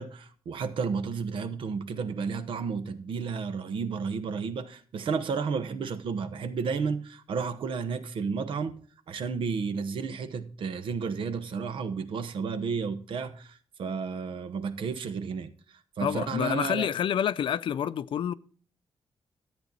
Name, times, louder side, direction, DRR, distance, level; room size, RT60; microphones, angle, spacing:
voice 1, 0.0-8.8 9.1-15.5 16.0-16.9, right 5 dB, 70° right, 1.0 m, -32 dB
voice 2, 16.0-18.3, left 9 dB, 65° left, 0.5 m, -28 dB
13.0 x 8.8 x 4.0 m
wide cardioid pair, 155°, 9 cm